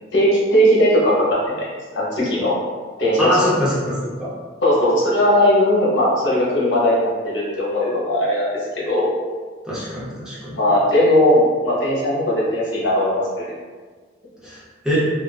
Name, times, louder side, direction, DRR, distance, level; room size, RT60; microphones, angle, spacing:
voice 1, 0.1-1.7 1.9-2.5 3.0-3.3 4.6-8.5 8.9-9.1 10.5-13.5, equal, 75° left, -6 dB, 0.8 m, -18 dB
voice 2, 3.2-4.3 9.6-10.6 14.4-14.6 14.8-15.0, equal, 5° right, -10 dB, 0.6 m, -23 dB
2.4 x 2.2 x 2.4 m, 1.5 s
head